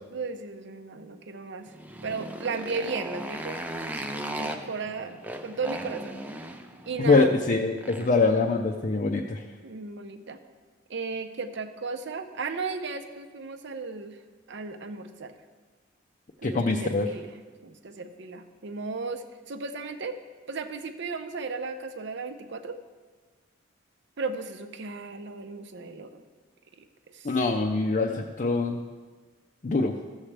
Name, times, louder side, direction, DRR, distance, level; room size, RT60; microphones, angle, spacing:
voice 1, 0.1-1.7 2.0-3.7 4.4-6.1 6.9-7.4 9.6-10.4 10.9-14.2 14.5-15.3 16.4-17.3 17.6-20.2 20.5-22.8 24.2-26.2 26.8-26.9 27.1-27.4, right 4 dB, 60° right, 8 dB, 0.7 m, -35 dB
Motorcycle, 1.7-8.3, right 1 dB, 10° right, 0.5 m, -37 dB
voice 2, 7.0-9.4 16.4-17.1 27.2-28.8 29.6-29.9, left 3 dB, 40° left, 1 dB, 0.5 m, -24 dB
14.5 x 7.3 x 3.3 m, 1.4 s
head